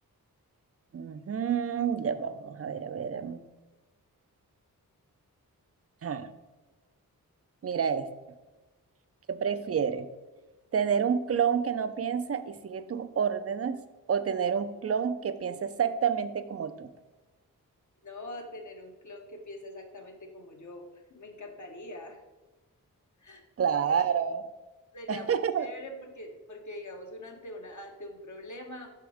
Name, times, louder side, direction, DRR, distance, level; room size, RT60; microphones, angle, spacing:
voice 1, 0.9-3.4 6.0-6.3 7.6-8.1 9.3-10.1 10.7-13.8 14.1-16.9 23.6-24.5 25.1-25.7, right 7 dB, 40° right, 11 dB, 0.5 m, -29 dB
voice 2, 18.0-22.2 23.2-23.4 24.9-28.9, left 1 dB, 50° left, 2 dB, 1.3 m, -43 dB
6.0 x 3.6 x 4.9 m, 1.2 s
cardioid pair, 50°, 37 cm